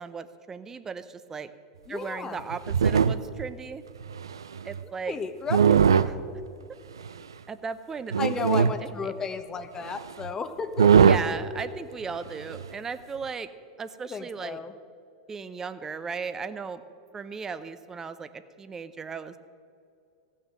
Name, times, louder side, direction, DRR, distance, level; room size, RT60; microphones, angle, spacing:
voice 1, 0.0-1.5 1.9-3.8 4.6-5.2 5.7-5.8 6.1-6.4 7.5-9.1 10.9-13.5 13.8-14.6 15.3-16.8 17.1-19.4, right 5 dB, 20° right, 11 dB, 0.7 m, -36 dB
voice 2, 1.9-2.4 5.1-5.6 8.2-11.1 14.1-14.7, left 5 dB, 25° left, 10 dB, 0.9 m, -33 dB
sound 1, 2.4-3.4 4.0-4.8 5.5-6.1 7.0-7.1 8.1-8.7 9.9-10.0 10.2-10.3 10.8-11.3 12.5-12.7, right 7 dB, 90° right, 0.4 m, -20 dB
15.5 x 6.6 x 7.5 m, 2.4 s
hypercardioid pair, 95°, 2 cm